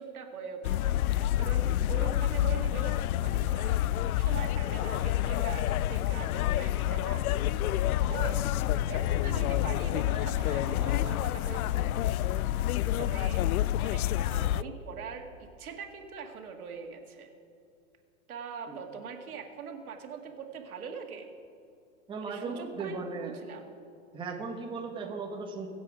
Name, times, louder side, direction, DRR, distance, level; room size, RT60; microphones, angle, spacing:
voice 1, 0.0-2.9 3.2-8.4 8.8-12.6 13.0-13.4 13.8-17.3 18.3-21.3 22.2-23.6, right 6 dB, 85° right, 3 dB, 2.1 m, -42 dB
sound 1, 0.6-14.6, left 13 dB, 80° left, 0.5 m, -28 dB
voice 2, 22.1-23.4 24.1-25.7, right 4 dB, 10° right, 0 dB, 1.2 m, -37 dB
22.5 x 7.6 x 4.9 m, 2.5 s
hypercardioid pair, 145°, 42 cm